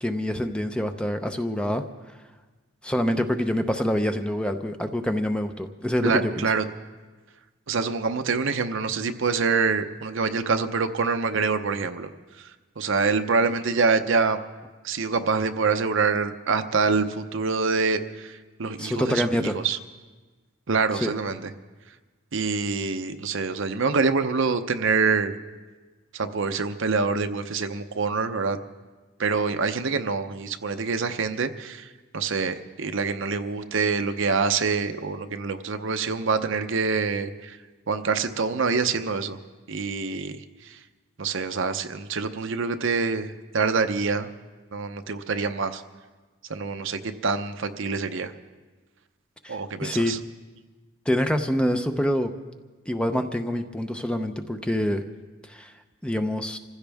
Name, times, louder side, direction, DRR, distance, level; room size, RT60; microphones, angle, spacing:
voice 1, 0.0-1.8 2.8-6.4 18.8-19.6 20.9-21.1 49.4-50.2 51.1-52.3 52.9-55.0 55.5-55.7 56.0-56.6, equal, 5° left, 7 dB, 0.6 m, -26 dB
voice 2, 6.0-6.6 7.7-12.1 12.8-14.4 14.8-18.3 18.6-19.8 20.7-21.5 22.3-25.3 26.1-28.6 29.2-31.9 32.1-37.6 37.9-39.4 39.7-40.4 41.2-44.3 44.7-45.8 46.5-48.3 49.5-50.2, right 4 dB, 65° right, 8 dB, 0.7 m, -25 dB
26.0 x 15.5 x 3.5 m, 1.3 s
head